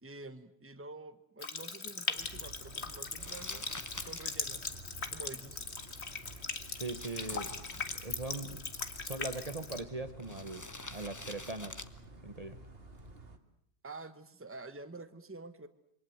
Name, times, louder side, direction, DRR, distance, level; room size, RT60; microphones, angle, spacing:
voice 1, 0.0-3.6 4.0-5.8 13.8-15.7, right 2 dB, 10° right, 10 dB, 1.3 m, -48 dB
Water tap faucet, 1.4-9.8, left 4 dB, 70° left, 2.1 m, -40 dB
sound 1, 2.1-13.4, right 2 dB, 60° right, 2.4 m, -52 dB
Crumpling crinkling, 3.2-13.3, left 2 dB, 15° left, 1.1 m, -50 dB
voice 2, 6.8-7.6 8.0-8.6 9.1-11.8 12.2-12.6, right 2 dB, 35° right, 10 dB, 1.3 m, -40 dB
27.5 x 24.5 x 7.9 m, 0.70 s
omnidirectional pair, 1.2 m